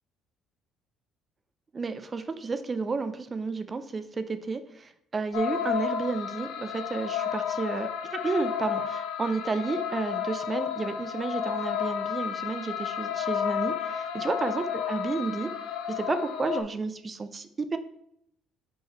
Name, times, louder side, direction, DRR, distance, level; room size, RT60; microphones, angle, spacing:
voice 1, 1.7-15.5 15.9-17.8, right 4 dB, 30° right, 11 dB, 0.6 m, -32 dB
sound 1, 5.3-16.6, left 8 dB, 80° left, 0.7 m, -32 dB
5.5 x 4.7 x 4.5 m, 0.73 s
supercardioid pair, 85°, 0 cm